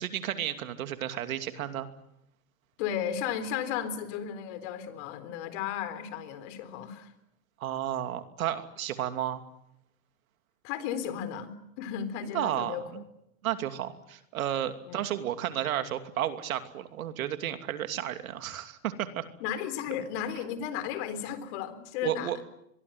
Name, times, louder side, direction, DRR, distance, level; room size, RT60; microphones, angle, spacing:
voice 1, 0.0-1.9 7.6-9.4 12.3-13.0 13.4-19.3 22.0-22.4, right 11 dB, 75° right, 8 dB, 2.8 m, -32 dB
voice 2, 2.8-7.1 10.6-12.8 13.8-13.9 14.9-15.0 19.4-22.4, left 9 dB, 55° left, 12 dB, 4.0 m, -34 dB
24.5 x 22.5 x 9.2 m, 0.80 s
hypercardioid pair, 125°, 42 cm